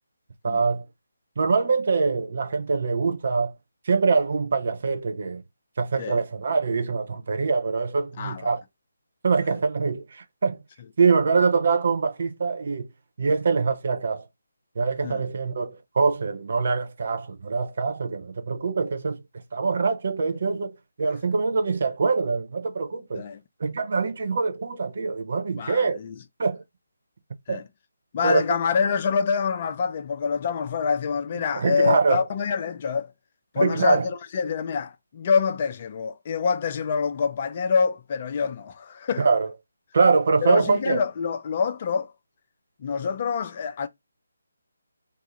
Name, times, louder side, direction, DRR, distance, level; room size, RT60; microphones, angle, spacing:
voice 1, 0.4-0.8 1.4-3.5 3.9-5.4 5.8-8.6 9.2-10.6 11.0-12.9 13.2-14.2 14.8-19.2 19.5-23.2 23.6-26.0 26.4-26.6 27.5-27.6 28.2-28.4 31.5-32.2 33.6-34.1 39.2-39.5 39.9-41.0, right 4 dB, 45° right, 0.6 m, -24 dB
voice 2, 8.2-8.5 15.0-15.2 23.2-23.4 25.5-26.2 27.5-27.7 28.1-33.1 33.5-39.3 40.4-42.1 42.8-43.9, left 6 dB, 30° left, 0.4 m, -26 dB
2.7 x 2.3 x 4.1 m
figure-of-eight pair, 150°, 0 cm